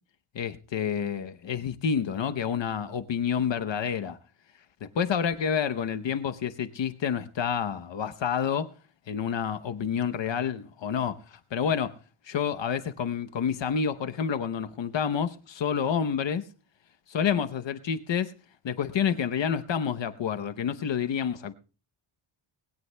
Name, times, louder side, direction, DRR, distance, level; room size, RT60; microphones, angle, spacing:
voice 1, 0.3-4.2 4.8-8.7 9.1-11.9 12.3-16.4 17.1-18.3 18.6-21.5, left 7 dB, 60° left, 0.9 m, -29 dB
20.0 x 17.5 x 2.2 m
wide cardioid pair, 135°, 50 cm